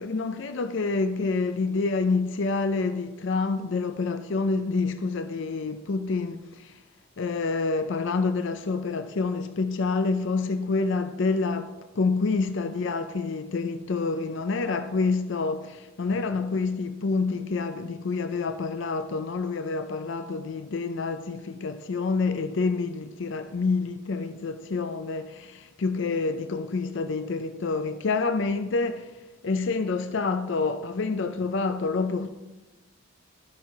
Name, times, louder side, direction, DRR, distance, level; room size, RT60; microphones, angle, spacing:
voice 1, 0.0-6.8 7.2-32.3, left 4 dB, 55° left, 0.4 m, -28 dB
13.0 x 5.6 x 4.6 m
head